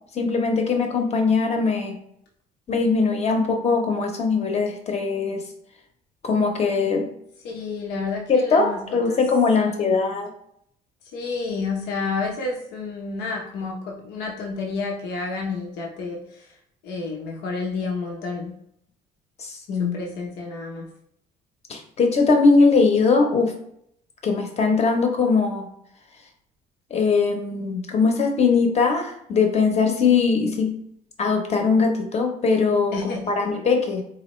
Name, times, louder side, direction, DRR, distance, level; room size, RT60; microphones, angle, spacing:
voice 1, 0.1-2.0 2.7-5.4 6.2-7.1 8.3-10.3 19.4-20.0 21.7-23.5 24.2-25.7 26.9-30.8 31.2-34.0, left 4 dB, 40° left, 3 dB, 0.9 m, -21 dB
voice 2, 7.4-9.2 9.6-10.1 11.1-16.6 16.8-18.5 19.8-20.9 32.9-33.6, left 4 dB, 85° left, -1 dB, 0.8 m, -30 dB
4.1 x 2.7 x 3.1 m, 0.71 s
cardioid pair, 110°, 17 cm